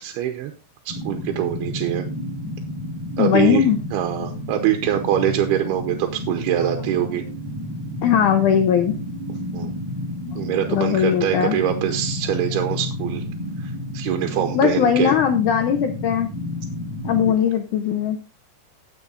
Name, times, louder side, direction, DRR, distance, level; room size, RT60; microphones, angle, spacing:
voice 1, 0.0-0.5 0.9-2.1 3.2-3.6 3.9-7.2 9.5-9.7 10.4-13.2 13.6-15.1 17.2-17.3, right 11 dB, 90° right, 5 dB, 2.9 m, -24 dB
sound 1, 0.9-17.3, left 1 dB, 5° right, 5.5 m, -31 dB
voice 2, 3.2-3.8 8.0-9.0 10.7-11.6 14.5-16.3 17.0-18.2, left 8 dB, 80° left, 5 dB, 1.8 m, -19 dB
18.5 x 6.3 x 2.6 m, 0.32 s
omnidirectional pair, 4.5 m